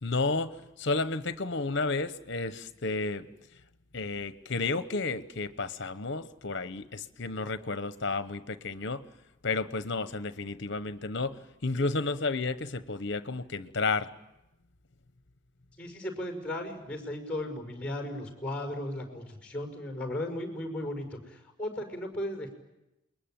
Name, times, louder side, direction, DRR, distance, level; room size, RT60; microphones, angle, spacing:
voice 1, 0.0-3.3 3.9-9.0 9.4-11.4 11.6-14.1, left 3 dB, 60° left, 13 dB, 1.1 m, -32 dB
voice 2, 15.8-22.5, left 1 dB, 5° left, 4 dB, 5.6 m, -36 dB
29.0 x 21.5 x 9.1 m, 0.94 s
head